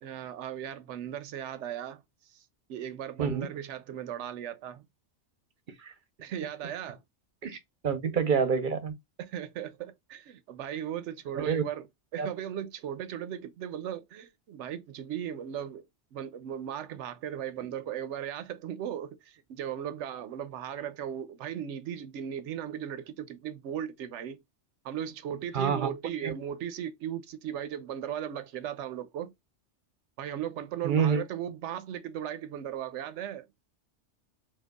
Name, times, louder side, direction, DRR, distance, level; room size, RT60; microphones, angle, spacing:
voice 1, 0.0-4.9 6.2-7.0 9.2-11.9 12.1-15.9 16.1-24.4 24.8-29.3 30.2-33.5, right 9 dB, 85° right, 0.9 m, -37 dB
voice 2, 7.4-8.9 11.3-11.6 12.2-12.3 25.5-25.9 26.2-26.3 30.8-31.2, right 6 dB, 50° right, 0.7 m, -27 dB
4.6 x 2.4 x 2.2 m
omnidirectional pair, 1.2 m